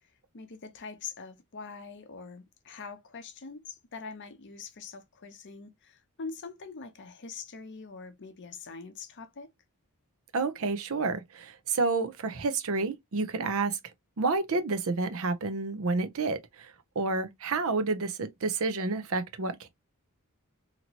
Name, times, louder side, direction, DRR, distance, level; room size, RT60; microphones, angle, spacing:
voice 1, 0.3-9.5, left 5 dB, 55° left, 0.7 m, -43 dB
voice 2, 10.3-13.8 14.2-19.7, right 3 dB, 65° right, 0.6 m, -30 dB
2.9 x 2.8 x 2.8 m
head